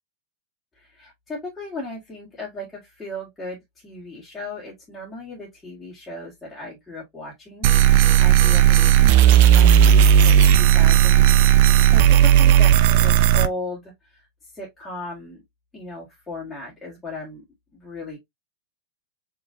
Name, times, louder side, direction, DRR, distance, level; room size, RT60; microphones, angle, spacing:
voice 1, 0.7-15.4 15.7-17.4 17.7-18.2, left 2 dB, 10° left, 1.8 m, -36 dB
sound 1, 7.6-13.5, right 10 dB, 50° right, 0.4 m, -14 dB
4.9 x 3.1 x 2.6 m
figure-of-eight pair, 90°, 0 cm